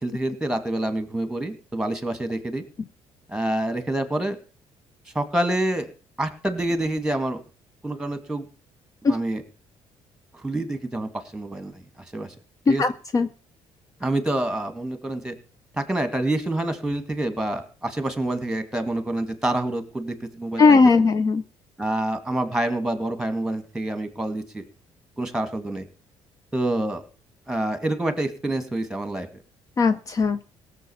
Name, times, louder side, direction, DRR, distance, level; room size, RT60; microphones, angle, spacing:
voice 1, 0.0-2.6 3.3-4.4 5.1-5.9 6.2-7.4 7.8-8.5 9.0-9.4 10.3-11.8 12.1-12.3 12.7-12.8 14.0-15.4 15.7-21.1 21.8-24.7 25.2-25.9 26.5-27.0 27.5-29.3, right 1 dB, 5° right, 10 dB, 2.3 m, -27 dB
voice 2, 12.7-13.3 20.6-21.4 29.8-30.4, left 4 dB, 35° left, 13 dB, 0.6 m, -18 dB
17.0 x 7.3 x 7.2 m, 0.37 s
cardioid pair, 115°, 10 cm